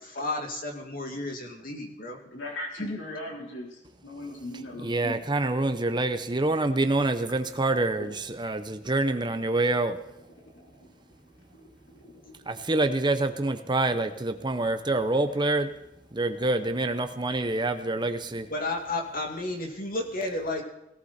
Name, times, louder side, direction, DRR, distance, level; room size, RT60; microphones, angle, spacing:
voice 1, 0.0-2.2 2.8-3.0 18.5-20.6, left 2 dB, 50° left, 2 dB, 2.4 m, -32 dB
voice 2, 2.2-5.2 8.0-8.1 8.8-9.0 9.5-9.6 10.3-11.1 11.5-12.6, left 1 dB, 90° left, -1 dB, 4.1 m, -41 dB
voice 3, 4.8-10.0 12.5-15.7 16.1-18.5, right 2 dB, 25° right, 8 dB, 0.9 m, -26 dB
18.0 x 17.5 x 4.4 m, 0.85 s
head